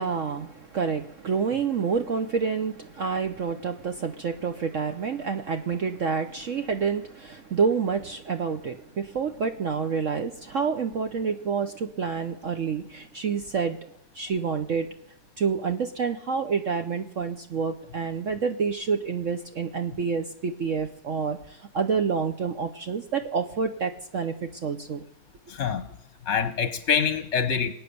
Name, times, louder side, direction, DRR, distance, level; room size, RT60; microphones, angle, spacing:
voice 1, 0.0-13.8 14.1-14.9 15.4-25.0, right 5 dB, 55° right, 7 dB, 0.9 m, -28 dB
voice 2, 25.5-25.9 26.3-27.7, left 7 dB, 45° left, 11 dB, 1.1 m, -25 dB
23.0 x 9.1 x 6.9 m, 0.81 s
omnidirectional pair, 2.0 m